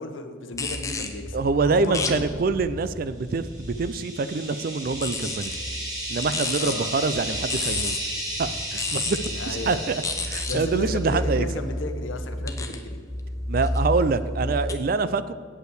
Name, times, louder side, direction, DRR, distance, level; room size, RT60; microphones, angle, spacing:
voice 1, 0.0-1.4 1.6-2.4 6.6-6.9 9.4-9.8 10.5-13.0, left 2 dB, 80° left, 7 dB, 0.9 m, -33 dB
sound 1, 0.5-4.0 4.8-14.7, left 2 dB, 15° left, 0.6 m, -32 dB
voice 2, 1.3-5.6 6.1-8.0 8.4-11.5 13.5-15.3, right 4 dB, 45° right, 14 dB, 0.4 m, -25 dB
sound 2, 3.4-11.2, right 1 dB, 20° right, 1.7 m, -34 dB
8.5 x 5.5 x 7.8 m, 2.1 s
head